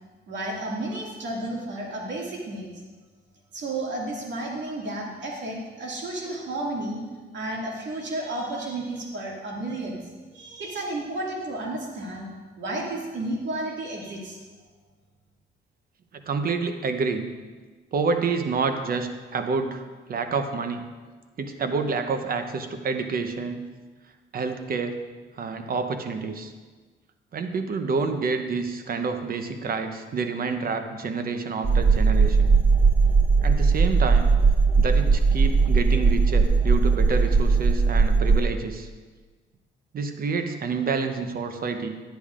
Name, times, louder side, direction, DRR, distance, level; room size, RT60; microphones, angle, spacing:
voice 1, 0.3-2.7 3.5-7.0 7.3-10.0 10.3-12.3 12.6-14.4, right 2 dB, 65° right, -2 dB, 2.1 m, -32 dB
voice 2, 16.3-17.3 17.9-19.8 20.1-20.8 21.4-23.6 24.3-25.0 25.4-26.5 27.3-32.5 33.4-34.3 34.8-38.9 39.9-42.0, right 4 dB, 50° right, 7 dB, 0.8 m, -28 dB
sound 1, 31.6-38.4, right 4 dB, 10° right, 0.5 m, -19 dB
10.5 x 9.8 x 2.5 m, 1.4 s
cardioid pair, 90°, 20 cm